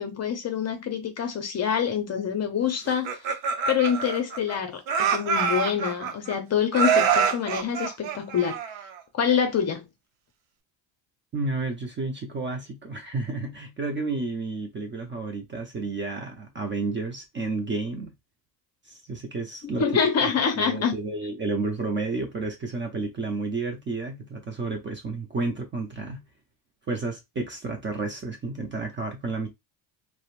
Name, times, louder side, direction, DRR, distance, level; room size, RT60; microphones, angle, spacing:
voice 1, 0.0-3.2 3.7-8.6 9.1-9.9 19.6-21.0, left 7 dB, 30° left, 0.6 m, -26 dB
Laughter, 2.9-4.6 4.9-6.3 6.7-9.0, right 6 dB, 70° right, 0.7 m, -25 dB
voice 2, 11.3-18.1 18.8-19.8 20.6-26.2 26.9-29.5, right 3 dB, 25° right, 0.5 m, -31 dB
2.9 x 2.1 x 2.4 m
supercardioid pair, 90°, 50 cm